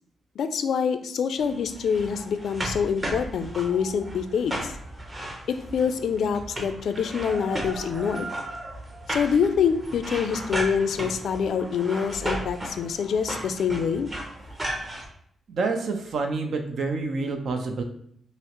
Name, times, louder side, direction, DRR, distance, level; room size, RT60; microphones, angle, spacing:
voice 1, 0.4-4.7 5.5-8.3 9.1-14.1, left 6 dB, 75° left, 9 dB, 0.4 m, -26 dB
sound 1, 1.4-15.1, right 1 dB, 25° right, 0.9 m, -35 dB
voice 2, 15.5-17.8, right 3 dB, 70° right, 4 dB, 0.6 m, -28 dB
5.3 x 2.0 x 3.0 m, 0.67 s
cardioid pair, 75°, 0 cm